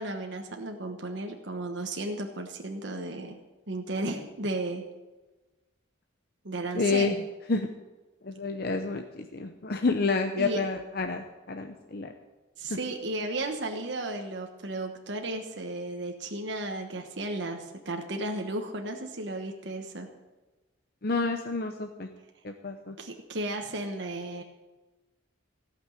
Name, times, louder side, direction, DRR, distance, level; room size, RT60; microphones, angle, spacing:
voice 1, 0.0-3.4 3.7-4.8 6.4-7.2 10.4-10.7 12.6-20.1 23.0-24.4, right 2 dB, 60° right, 3 dB, 1.2 m, -34 dB
voice 2, 6.7-7.2 7.5-7.7 8.2-12.1 21.0-22.1 22.4-22.9, left 4 dB, 50° left, 5 dB, 0.8 m, -29 dB
17.0 x 6.1 x 9.2 m, 1.2 s
head